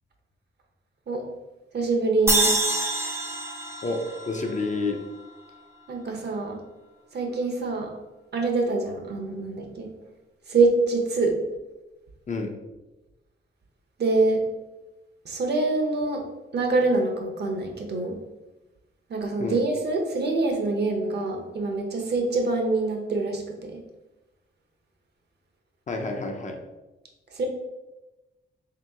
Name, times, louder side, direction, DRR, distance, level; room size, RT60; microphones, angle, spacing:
voice 1, 1.7-2.5 5.9-6.6 7.1-7.9 8.3-9.9 10.5-11.4 14.0-14.4 15.2-16.2 16.5-18.2 19.1-23.4 23.7-23.8 27.3-27.5, right 3 dB, 55° right, 2 dB, 0.8 m, -25 dB
sound 1, 2.3-5.5, right 2 dB, 10° right, 0.5 m, -27 dB
voice 2, 3.8-5.0 12.3-12.5 19.4-19.6 25.9-26.6, left 3 dB, 35° left, 3 dB, 0.5 m, -29 dB
3.6 x 2.9 x 3.5 m, 1.1 s
cardioid pair, 100°, 21 cm